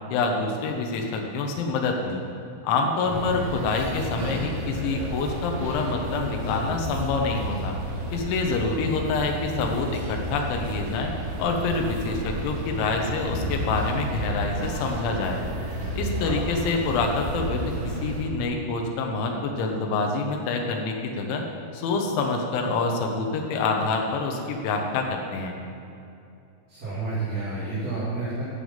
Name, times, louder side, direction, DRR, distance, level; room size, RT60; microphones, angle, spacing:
voice 1, 0.1-2.2 2.6-7.7 8.1-11.1 11.4-15.4 16.0-21.4 21.7-25.5, left 3 dB, 75° left, 2 dB, 3.4 m, -26 dB
voice 2, 3.1-3.4 16.2-16.4 26.7-28.4, right 3 dB, 25° right, -13 dB, 2.5 m, -30 dB
sound 1, 3.1-18.2, equal, 75° right, 4.3 m, -32 dB
12.5 x 7.0 x 5.7 m, 2.6 s
omnidirectional pair, 5.7 m